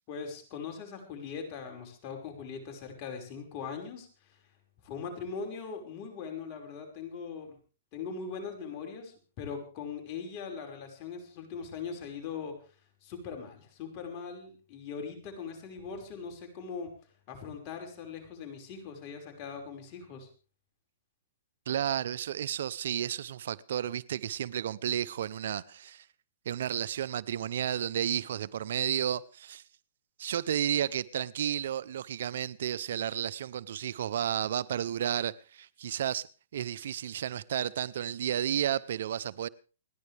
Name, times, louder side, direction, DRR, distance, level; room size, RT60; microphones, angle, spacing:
voice 1, 0.1-4.4 4.8-7.5 7.9-12.6 13.0-16.9 17.3-20.3, left 5 dB, 40° left, 5.4 m, -40 dB
voice 2, 21.7-26.0 26.5-29.6 30.2-39.5, right 10 dB, 65° right, 0.7 m, -32 dB
29.5 x 10.5 x 3.4 m
hypercardioid pair, 135°, 0 cm